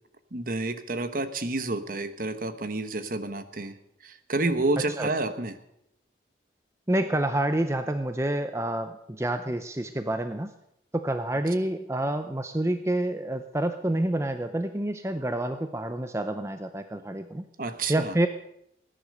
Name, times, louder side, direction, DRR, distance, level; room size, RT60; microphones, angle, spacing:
voice 1, 0.3-3.8 4.0-5.6 17.6-18.1, right 2 dB, 50° right, 10 dB, 1.2 m, -29 dB
voice 2, 6.9-10.5 10.9-17.4 17.9-18.3, right 1 dB, 15° right, 8 dB, 0.6 m, -28 dB
19.0 x 10.0 x 6.6 m, 0.78 s
head